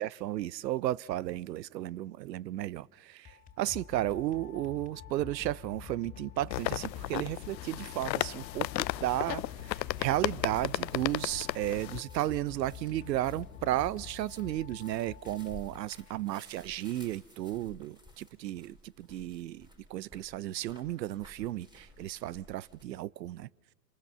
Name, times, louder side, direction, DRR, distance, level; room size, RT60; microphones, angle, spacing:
voice 1, 0.0-23.5, right 14 dB, 75° right, 0.7 m, -34 dB
sound 1, 3.1-16.3, left 8 dB, 15° left, 2.7 m, -48 dB
Obi Creak, 6.5-12.0, left 14 dB, 85° left, 0.6 m, -35 dB
sound 2, 9.5-22.8, equal, 10° right, 3.6 m, -56 dB
27.0 x 19.5 x 6.8 m
hypercardioid pair, 120°, 50 cm